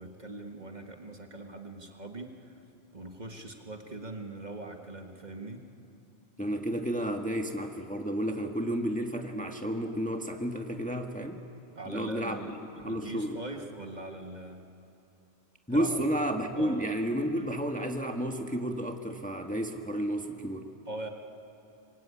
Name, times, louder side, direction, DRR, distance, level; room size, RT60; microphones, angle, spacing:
voice 1, 0.0-2.5 2.9-5.6 11.8-14.6 15.7-16.0 16.5-16.8 20.9-21.1, right 2 dB, 40° right, 3 dB, 1.8 m, -41 dB
voice 2, 6.4-11.4 11.9-13.4 15.7-20.7, equal, 5° left, 3 dB, 1.4 m, -31 dB
28.0 x 23.5 x 8.5 m, 2.8 s
omnidirectional pair, 1.1 m